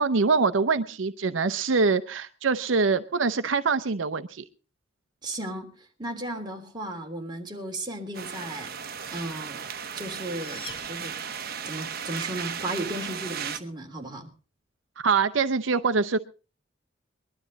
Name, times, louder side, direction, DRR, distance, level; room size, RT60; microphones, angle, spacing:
voice 1, 0.0-4.4 15.0-16.2, right 4 dB, 75° right, 12 dB, 0.7 m, -24 dB
voice 2, 5.2-8.7 9.1-9.6 9.9-11.2 11.6-14.3, right 1 dB, 25° right, 2 dB, 3.2 m, -35 dB
sound 1, 8.1-13.6, right 7 dB, 55° right, 1.1 m, -36 dB
sound 2, 10.0-11.7, left 3 dB, 25° left, 2.8 m, -46 dB
21.0 x 12.0 x 4.0 m, 0.35 s
head